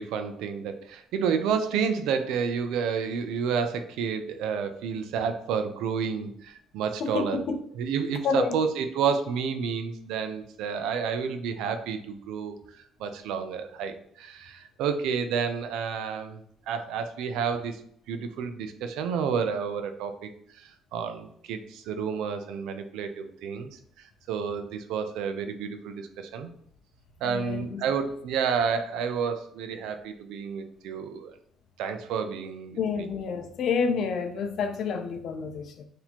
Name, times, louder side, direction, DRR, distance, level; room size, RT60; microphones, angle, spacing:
voice 1, 0.0-7.4 7.7-17.8 18.1-26.5 27.2-31.3 31.8-33.1, right 6 dB, 85° right, 0.5 m, -30 dB
voice 2, 7.0-7.6 8.2-8.5 27.2-27.8 32.8-35.8, left 5 dB, 60° left, 0.5 m, -29 dB
4.1 x 2.7 x 2.9 m
cardioid pair, 125°, 0 cm